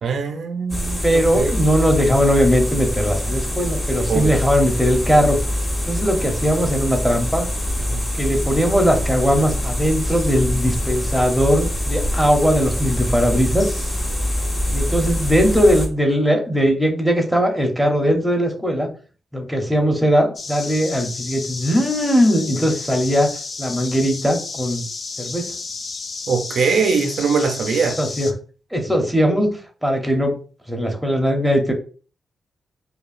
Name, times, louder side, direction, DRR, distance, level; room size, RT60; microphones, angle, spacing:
voice 1, 0.0-1.6 4.1-4.4 7.9-8.0 26.3-28.0, right 5 dB, 70° right, 0.5 m, -21 dB
sound 1, 0.7-15.9, left 1 dB, 25° left, 1.0 m, -24 dB
voice 2, 1.0-5.4 5.9-7.5 8.1-13.7 14.7-18.9 19.3-23.3 23.6-24.8 25.2-25.5 28.0-28.3 28.7-29.5 29.8-30.3 30.7-31.7, equal, ahead, 0.7 m, -19 dB
sound 2, 20.4-28.3, left 4 dB, 40° left, 0.4 m, -32 dB
5.0 x 2.3 x 2.5 m
wide cardioid pair, 145°, 0 cm